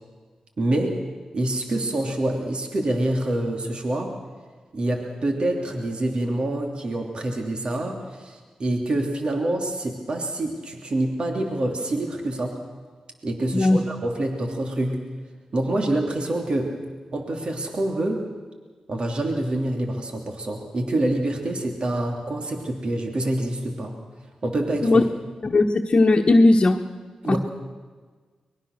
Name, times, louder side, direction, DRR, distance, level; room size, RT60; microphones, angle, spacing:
voice 1, 0.6-1.0 1.3-4.2 4.7-12.6 13.2-15.0 15.5-16.8 17.1-18.2 18.9-24.0 24.4-25.0 27.2-27.4, right 1 dB, 55° right, 2 dB, 3.0 m, -26 dB
voice 2, 25.4-26.8 27.3-27.4, left 2 dB, 45° left, 1 dB, 1.3 m, -17 dB
24.0 x 21.0 x 6.7 m, 1.5 s
supercardioid pair, 45°, 2 cm